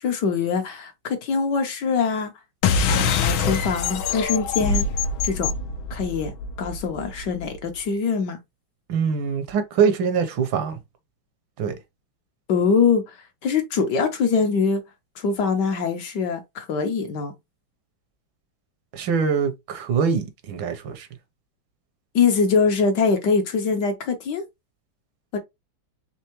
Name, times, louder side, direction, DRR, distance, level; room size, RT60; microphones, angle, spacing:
voice 1, 0.0-2.3 2.9-4.9 5.2-5.5 5.9-6.3 6.6-8.4 12.5-14.8 15.2-17.3 22.1-24.4 25.3-25.4, left 5 dB, 65° left, 1.3 m, -23 dB
sound 1, 2.6-7.5, left 5 dB, 80° left, 1.5 m, -24 dB
voice 2, 8.9-10.8 11.6-11.7 18.9-21.1, right 6 dB, 75° right, 1.5 m, -23 dB
4.5 x 3.4 x 2.9 m
omnidirectional pair, 2.2 m